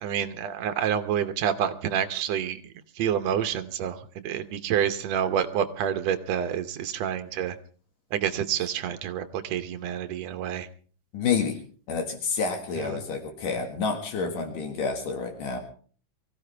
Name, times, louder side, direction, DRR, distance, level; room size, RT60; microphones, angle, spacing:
voice 1, 0.0-2.6 3.0-4.0 4.2-7.6 8.1-10.7 12.8-12.9, right 9 dB, 70° right, 10 dB, 1.8 m, -28 dB
voice 2, 11.1-11.6 11.9-15.6, left 5 dB, 75° left, 5 dB, 3.3 m, -29 dB
24.0 x 15.5 x 3.4 m, 0.41 s
omnidirectional pair, 3.8 m